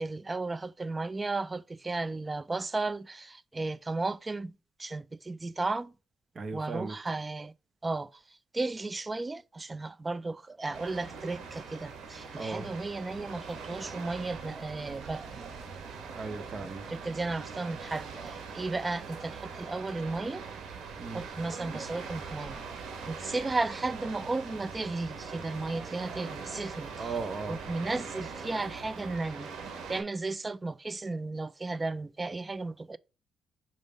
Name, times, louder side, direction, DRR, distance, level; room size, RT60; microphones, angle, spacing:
voice 1, 0.0-4.5 4.8-5.9 6.5-7.5 7.8-8.1 8.5-15.4 16.9-20.4 21.1-22.6 23.1-27.1 27.5-29.5 29.9-33.0, right 3 dB, 25° right, 0.4 m, -34 dB
voice 2, 6.3-7.0 12.4-12.7 16.2-16.8 21.0-21.2 27.0-27.6, right 4 dB, 40° right, 1.0 m, -36 dB
sound 1, 10.7-30.0, right 5 dB, 80° right, 1.8 m, -42 dB
sound 2, 13.1-29.2, right 6 dB, 60° right, 1.5 m, -50 dB
5.2 x 3.5 x 5.2 m
cardioid pair, 90°, 0 cm